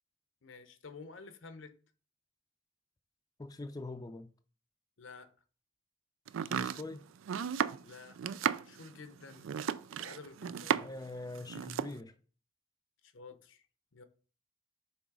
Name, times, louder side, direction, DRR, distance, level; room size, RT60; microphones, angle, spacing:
voice 1, 0.4-1.7 5.0-5.3 7.8-8.2 8.6-9.5 10.0-10.9 13.0-13.6 13.9-14.0, left 4 dB, 75° left, 0.8 m, -51 dB
voice 2, 3.4-4.3 6.5-7.0 10.8-12.1, left 2 dB, 20° left, 0.4 m, -43 dB
Domestic sounds home sounds, 6.3-11.1 11.4-12.0, right 8 dB, 85° right, 0.4 m, -34 dB
6.0 x 4.0 x 4.7 m
head